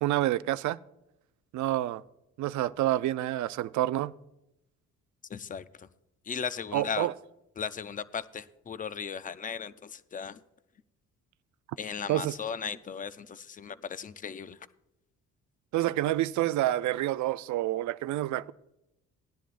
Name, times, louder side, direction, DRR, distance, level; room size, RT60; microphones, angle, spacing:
voice 1, 0.0-0.8 1.5-2.0 2.4-4.1 6.7-7.1 12.1-12.4 15.7-18.5, right 14 dB, 70° right, 0.5 m, -28 dB
voice 2, 5.3-5.9 6.3-7.1 7.6-10.4 11.8-14.6, left 7 dB, 25° left, 0.5 m, -37 dB
18.0 x 10.0 x 2.5 m
cardioid pair, 90°, 30 cm